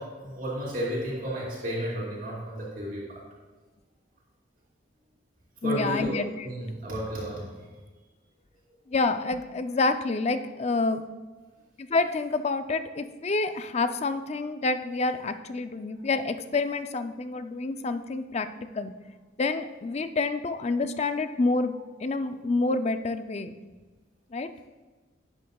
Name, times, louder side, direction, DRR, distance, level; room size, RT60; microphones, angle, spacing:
voice 1, 0.0-3.2 5.6-7.4, right 1 dB, 45° right, -7 dB, 3.2 m, -32 dB
voice 2, 5.6-6.5 8.9-11.0 11.8-18.5 18.7-18.9 19.4-21.7 22.0-23.5 24.3-24.5, left 3 dB, 35° left, 10 dB, 0.4 m, -28 dB
11.5 x 10.0 x 2.3 m, 1.3 s
head